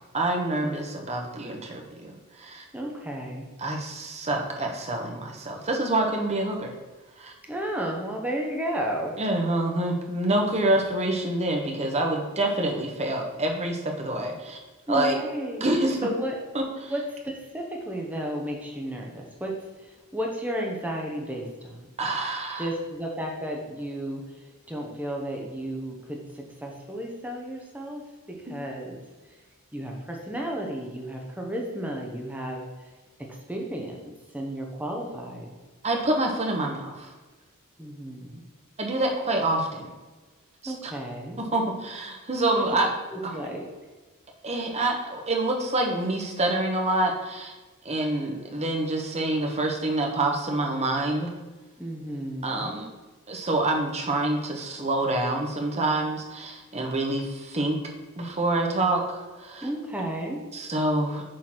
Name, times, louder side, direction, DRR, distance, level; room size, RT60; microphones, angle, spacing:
voice 1, 0.1-2.6 3.6-6.7 7.2-7.3 9.2-14.6 14.9-15.2 15.6-16.0 16.5-16.9 22.0-22.7 28.5-28.6 35.8-37.1 38.8-39.9 40.6-40.9 41.4-42.9 43.2-43.4 44.4-47.5 47.8-51.3 52.4-52.9 53.3-57.8 58.2-59.7 60.5-61.2, right 2 dB, 30° right, 1 dB, 1.1 m, -27 dB
voice 2, 2.7-3.4 7.5-9.1 10.3-11.0 14.9-15.6 16.0-16.3 16.9-19.5 19.8-21.8 22.6-28.0 28.3-29.0 29.3-29.4 29.7-32.9 33.5-35.5 37.8-38.4 40.6-41.4 42.5-42.6 43.1-43.6 51.8-52.8 59.6-60.4, equal, 5° right, 0 dB, 0.9 m, -33 dB
6.5 x 4.0 x 5.9 m, 1.3 s
head